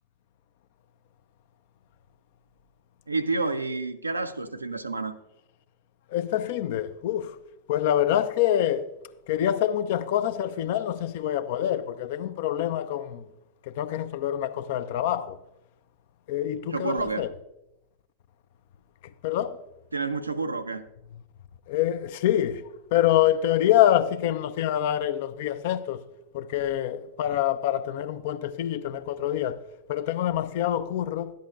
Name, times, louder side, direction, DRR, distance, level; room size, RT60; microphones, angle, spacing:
voice 1, 3.1-5.2 16.7-17.2 19.9-20.8, right 3 dB, 80° right, 0.5 m, -29 dB
voice 2, 6.1-7.4 7.7-8.9 9.3-13.3 13.6-15.4 16.3-17.3 19.0-19.6 21.7-26.0 26.3-29.6 29.9-31.3, left 11 dB, 50° left, 0.4 m, -26 dB
11.5 x 10.0 x 2.4 m
figure-of-eight pair, 90°, 0 cm